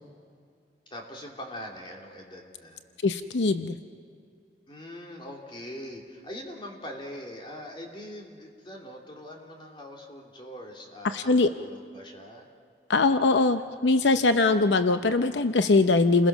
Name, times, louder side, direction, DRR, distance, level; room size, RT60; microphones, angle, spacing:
voice 1, 0.9-2.8 4.7-12.5, equal, 30° left, 0 dB, 3.0 m, -42 dB
voice 2, 3.0-3.8 11.0-11.5 12.9-16.3, left 3 dB, 85° left, 9 dB, 0.7 m, -22 dB
29.5 x 20.5 x 6.1 m, 2.3 s
head